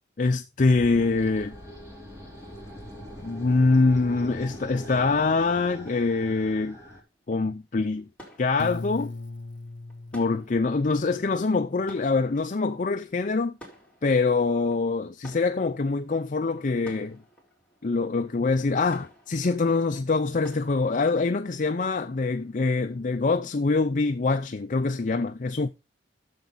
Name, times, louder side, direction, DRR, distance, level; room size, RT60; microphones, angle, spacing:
voice 1, 0.2-1.5 3.2-6.8 7.3-8.1 8.4-9.1 10.1-13.5 14.0-17.2 17.8-25.7, left 3 dB, 45° left, 0.5 m, -24 dB
sound 1, 0.7-7.0, equal, 15° right, 4.1 m, -42 dB
sound 2, 6.9-24.0 24.3-24.5, equal, 5° left, 3.6 m, -54 dB
Piano, 8.6-11.5, left 3 dB, 70° left, 1.0 m, -38 dB
10.5 x 7.1 x 3.9 m
head